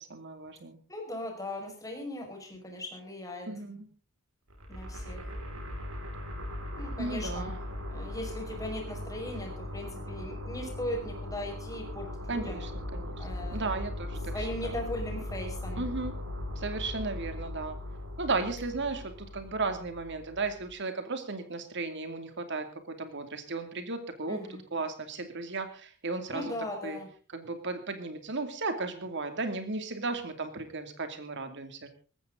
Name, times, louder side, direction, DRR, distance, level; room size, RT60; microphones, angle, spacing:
voice 1, 0.0-0.8 3.5-3.9 7.0-7.6 12.3-14.8 15.8-16.2 16.6-17.8 18.2-26.5 26.8-27.0 27.3-31.9, right 3 dB, 55° right, 8 dB, 2.6 m, -35 dB
voice 2, 0.9-3.5 4.7-5.2 6.8-7.5 7.9-12.7 13.2-13.7 14.3-15.8 24.3-24.6 26.3-27.1, left 1 dB, 15° left, 1 dB, 5.5 m, -38 dB
sound 1, 4.5-20.7, left 1 dB, 75° right, 5.2 m, -39 dB
19.0 x 15.0 x 3.9 m, 0.36 s
head